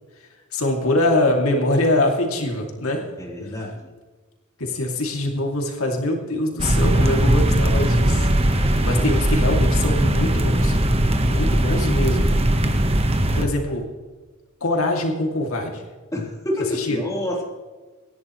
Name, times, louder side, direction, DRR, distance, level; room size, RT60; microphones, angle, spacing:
voice 1, 0.5-3.0 3.4-3.5 4.6-8.3 8.7-10.7 11.3-12.4 13.3-13.9 14.6-15.9 16.8-17.0, left 1 dB, 80° left, 1 dB, 2.6 m, -23 dB
voice 2, 3.2-3.9 8.8-9.1 16.1-17.4, left 1 dB, 15° left, -3 dB, 3.5 m, -28 dB
sound 1, 6.6-13.4, right 1 dB, 30° right, 1.3 m, -19 dB
25.5 x 11.0 x 3.2 m, 1.4 s
head